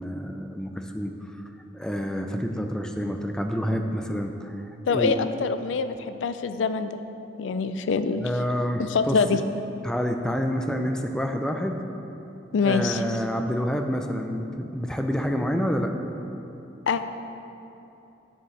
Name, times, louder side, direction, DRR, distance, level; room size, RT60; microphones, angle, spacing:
voice 1, 0.0-1.3 1.7-4.5 4.9-5.2 8.2-9.4 9.8-11.8 12.6-15.9, equal, 5° left, 4 dB, 0.4 m, -28 dB
voice 2, 4.9-7.0 7.4-8.3 8.9-9.4 12.5-13.0 16.9-17.0, left 5 dB, 90° left, 10 dB, 0.4 m, -24 dB
8.7 x 7.0 x 3.3 m, 3.0 s
head